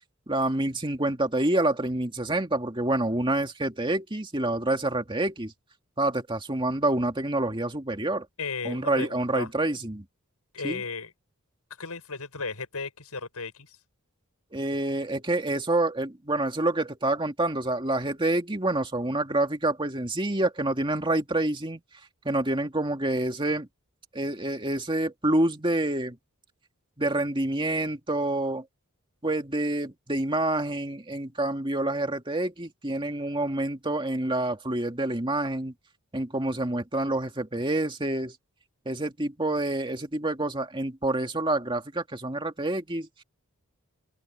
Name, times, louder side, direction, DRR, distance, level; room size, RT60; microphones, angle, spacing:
voice 1, 0.3-5.5 6.0-8.3 8.6-10.0 10.6-10.8 14.5-21.8 22.2-23.7 24.1-26.2 27.0-28.6 29.2-35.7 36.1-38.4 38.9-43.2, right 2 dB, 20° right, 2.3 m, -27 dB
voice 2, 8.4-9.5 10.5-11.1 11.8-13.8, left 4 dB, 85° left, 6.1 m, -35 dB
open air
head